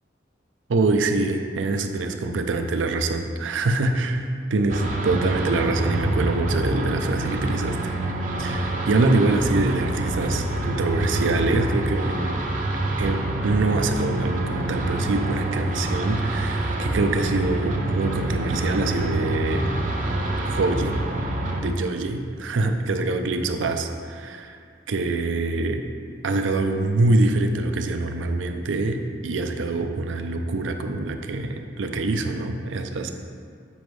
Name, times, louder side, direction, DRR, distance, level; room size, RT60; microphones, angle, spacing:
voice 1, 0.7-8.0 8.4-12.4 13.0-19.7 20.4-21.0 21.6-24.6 24.9-25.9 26.2-33.1, right 2 dB, 90° right, 6 dB, 0.5 m, -24 dB
sound 1, 4.7-21.6, right 1 dB, 45° right, 0.6 m, -26 dB
7.1 x 5.0 x 3.2 m, 2.2 s
head